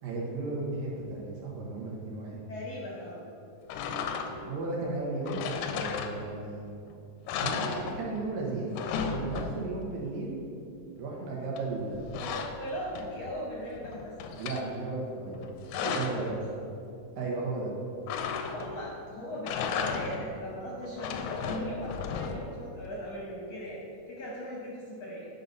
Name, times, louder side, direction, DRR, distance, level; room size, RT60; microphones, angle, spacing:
voice 1, 0.0-2.4 4.4-6.7 7.4-8.7 9.1-10.4 11.0-12.1 14.4-16.3 17.2-17.7, right 3 dB, 80° right, -3 dB, 3.0 m, -35 dB
voice 2, 2.5-3.2 12.2-14.3 15.7-16.3 18.5-25.3, equal, 65° left, -4 dB, 1.6 m, -39 dB
sound 1, 3.7-4.6 5.3-6.5 6.9-7.0 7.3-8.3 8.6-9.9 11.6-13.3 13.7-14.7 15.3-16.3 18.1-18.9 19.3-20.4 20.8-22.6, left 5 dB, 85° left, 2.2 m, -35 dB
9.7 x 4.0 x 5.3 m, 2.6 s
omnidirectional pair, 4.0 m